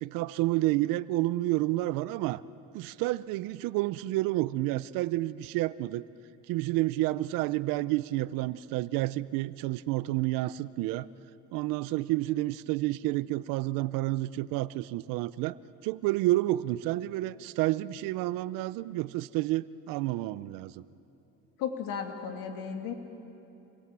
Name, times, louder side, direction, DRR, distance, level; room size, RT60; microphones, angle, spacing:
voice 1, 0.0-2.4 2.7-6.0 6.5-11.1 11.5-15.6 15.8-20.8, right 17 dB, 90° right, 17 dB, 0.7 m, -30 dB
voice 2, 21.6-22.9, left 7 dB, 90° left, 4 dB, 3.0 m, -34 dB
29.0 x 23.0 x 7.6 m, 2.9 s
cardioid pair, 115°, 32 cm